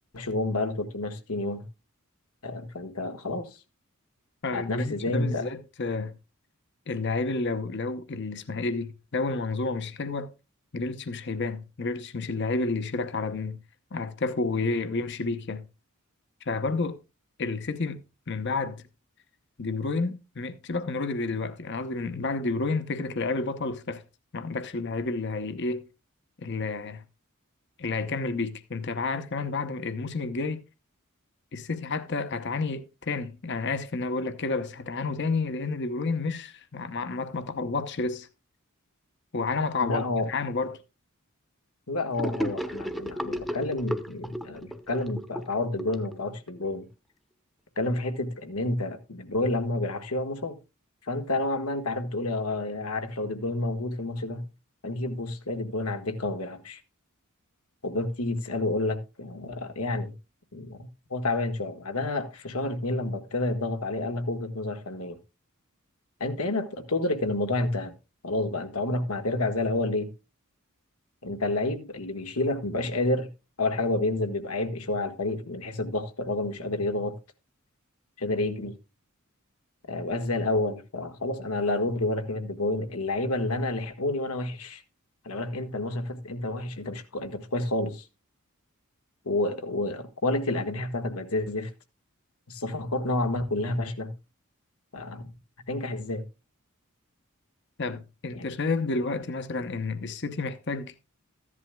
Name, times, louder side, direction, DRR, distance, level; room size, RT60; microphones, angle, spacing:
voice 1, 0.1-1.7 2.4-3.6 4.5-5.5 39.8-40.3 41.9-46.9 47.8-50.6 51.1-54.4 54.8-56.8 57.8-60.1 60.5-65.2 66.2-67.9 68.2-70.1 71.2-73.3 73.6-77.2 78.2-78.7 79.9-84.8 85.2-88.0 89.2-91.7 92.5-94.1 94.9-95.3 95.7-96.2 98.3-98.5, left 2 dB, 85° left, 1.5 m, -29 dB
voice 2, 4.4-6.1 6.9-10.3 10.7-13.6 13.9-15.6 16.5-17.0 17.4-18.0 18.3-18.8 19.6-24.0 24.3-25.8 26.4-27.0 27.8-30.6 31.5-38.3 39.3-40.8 97.8-100.9, left 3 dB, 55° left, 0.9 m, -30 dB
Gurgling / Sink (filling or washing), 42.2-46.7, equal, ahead, 0.9 m, -34 dB
14.5 x 11.0 x 2.3 m
head